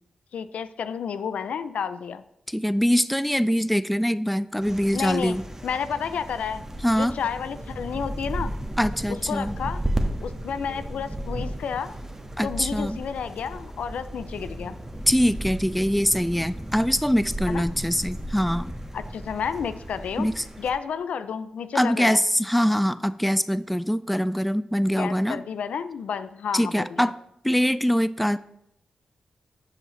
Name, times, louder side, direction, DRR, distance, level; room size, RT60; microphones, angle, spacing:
voice 1, 0.3-2.2 4.9-5.4 5.6-6.6 7.0-8.5 9.1-9.8 10.2-11.9 12.4-14.8 17.5-17.6 18.9-22.2 24.9-27.1, left 7 dB, 80° left, 13 dB, 0.4 m, -31 dB
voice 2, 2.5-5.4 6.8-7.2 8.8-9.6 12.4-13.0 15.1-18.7 20.2-20.4 21.7-25.4 26.5-27.2 27.4-28.4, equal, ahead, 16 dB, 0.3 m, -23 dB
sound 1, 4.6-20.7, right 1 dB, 20° right, 1.2 m, -34 dB
sound 2, 6.9-12.4, right 2 dB, 45° right, 1.6 m, -48 dB
12.0 x 5.4 x 3.1 m, 0.80 s
supercardioid pair, 45°, 2 cm